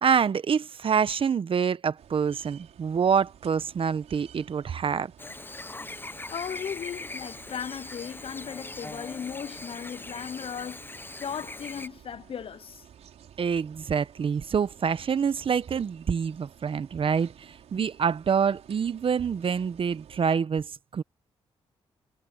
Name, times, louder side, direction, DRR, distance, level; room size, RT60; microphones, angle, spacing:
voice 1, 0.0-5.1 13.4-21.0, right 6 dB, 55° right, 1.0 m, -26 dB
sound 1, 2.0-20.3, right 9 dB, 80° right, 6.3 m, -53 dB
Chirp tweet / Buzz, 5.2-11.9, left 2 dB, 20° left, 0.9 m, -41 dB
voice 2, 6.3-10.8 11.2-12.8, left 7 dB, 55° left, 0.7 m, -36 dB
cardioid pair, 65°, 11 cm